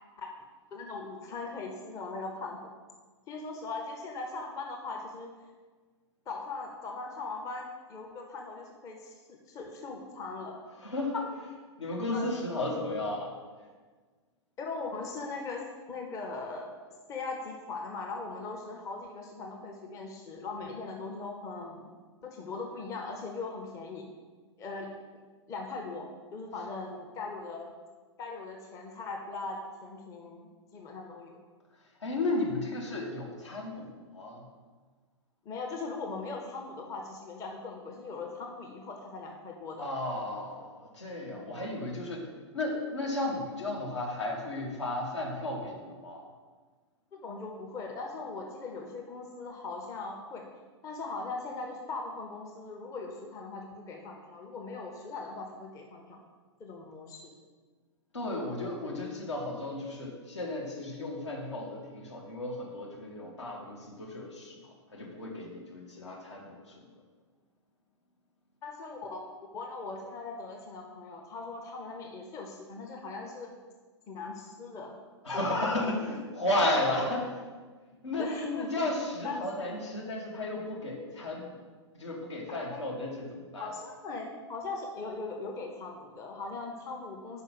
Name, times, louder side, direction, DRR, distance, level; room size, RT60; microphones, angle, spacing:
voice 1, 0.7-2.6 3.3-5.3 6.3-10.6 11.9-12.3 14.6-16.7 17.1-21.9 22.2-24.1 24.6-25.2 25.5-27.7 28.2-31.4 35.4-39.9 41.3-41.5 47.1-50.5 50.8-56.2 56.6-57.3 68.6-69.2 69.5-73.5 74.1-74.9 75.3-76.0 78.2-78.8 79.2-79.4 82.7-82.8 83.6-87.4, left 3 dB, 20° left, 1 dB, 0.8 m, -39 dB
voice 2, 10.8-13.3 32.0-34.4 39.8-42.3 42.5-46.2 58.1-66.8 75.2-77.3 78.0-81.6 81.9-83.7, left 2 dB, 70° left, -1 dB, 1.7 m, -34 dB
5.5 x 5.4 x 6.5 m, 1.4 s
figure-of-eight pair, 105°, 16 cm